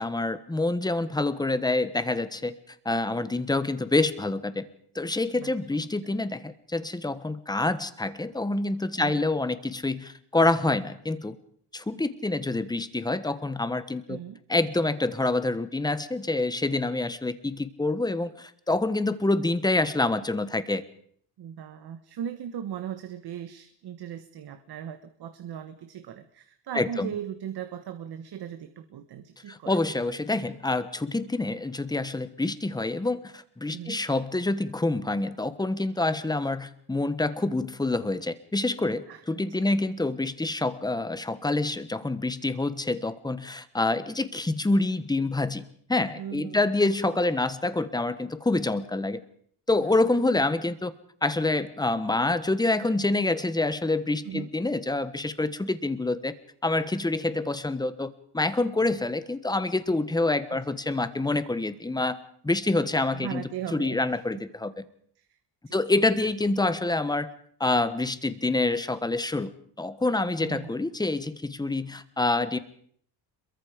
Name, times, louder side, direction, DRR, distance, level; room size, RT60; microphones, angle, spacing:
voice 1, 0.0-2.5 2.8-4.7 4.9-11.4 11.7-14.2 14.5-20.8 26.7-27.1 29.5-45.6 45.9-49.2 49.7-50.9 51.2-56.3 56.6-62.2 62.4-63.4 63.7-64.8 65.7-67.3 67.6-69.5 69.8-72.6, left 2 dB, 10° left, 13 dB, 1.2 m, -27 dB
voice 2, 14.1-14.4 21.4-29.8 33.7-34.0 39.1-39.6 46.2-46.6 49.8-50.0 54.2-54.5 60.5-60.8 63.1-64.4 65.2-65.4 65.7-65.8 70.4-70.7, right 9 dB, 65° right, 9 dB, 1.6 m, -38 dB
27.5 x 23.0 x 5.2 m, 0.63 s
cardioid pair, 150°, 42 cm